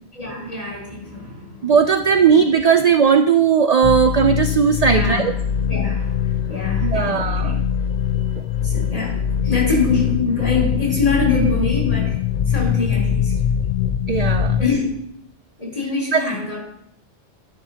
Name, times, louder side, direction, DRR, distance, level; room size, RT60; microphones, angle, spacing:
voice 1, 0.1-1.7 2.3-2.4 4.9-5.3 5.7-6.2 6.5-7.6 8.6-9.1 9.4-12.1 12.5-13.3 14.6-15.0 15.6-16.6, left 4 dB, 30° left, -5 dB, 3.6 m, -24 dB
voice 2, 1.6-5.3 6.8-7.5 14.1-14.6 16.1-16.3, right 6 dB, 60° right, 8 dB, 0.4 m, -17 dB
sound 1, 3.8-14.7, left 8 dB, 60° left, 0.6 m, -22 dB
11.5 x 11.0 x 2.8 m, 0.74 s
omnidirectional pair, 1.2 m